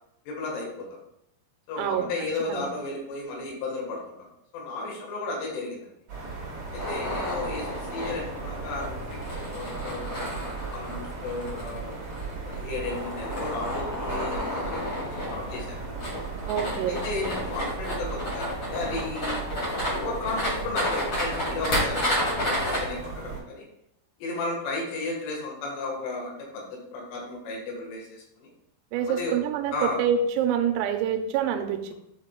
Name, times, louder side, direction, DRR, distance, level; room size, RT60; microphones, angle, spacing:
voice 1, 0.3-0.9 1.7-4.2 4.5-5.9 6.7-9.0 9.4-10.3 10.7-12.0 12.3-15.8 16.9-19.4 19.9-23.6 24.2-26.7 26.9-28.5 29.1-29.4 29.7-30.0, left 2 dB, 75° left, -1 dB, 3.8 m, -34 dB
voice 2, 1.8-2.1 2.5-2.7 16.5-17.0 28.9-31.9, right 8 dB, 90° right, 5 dB, 3.3 m, -26 dB
sound 1, 6.1-23.4, right 4 dB, 75° right, 1.1 m, -37 dB
sound 2, 6.8-22.8, left 1 dB, 90° left, 1.0 m, -31 dB
10.0 x 4.9 x 2.2 m, 0.81 s
omnidirectional pair, 5.9 m